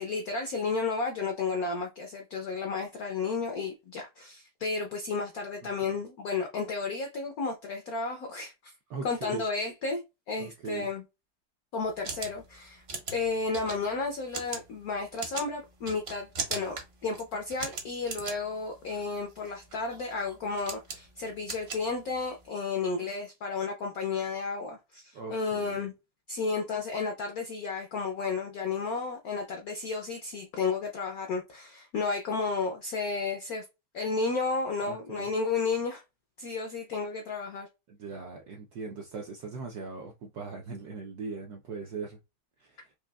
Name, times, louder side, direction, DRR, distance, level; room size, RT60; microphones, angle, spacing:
voice 1, 0.0-8.7 9.0-11.0 11.7-12.8 13.1-16.8 17.0-25.9 26.3-33.6 33.9-36.0 36.4-37.7, left 4 dB, 80° left, 0.8 m, -32 dB
voice 2, 8.9-9.4 10.4-10.9 25.1-25.8 34.8-35.3 37.9-42.2 42.6-42.9, right 4 dB, 75° right, 0.9 m, -40 dB
sound 1, 11.8-22.5, right 4 dB, 50° right, 0.7 m, -40 dB
5.0 x 2.6 x 2.2 m
omnidirectional pair, 2.3 m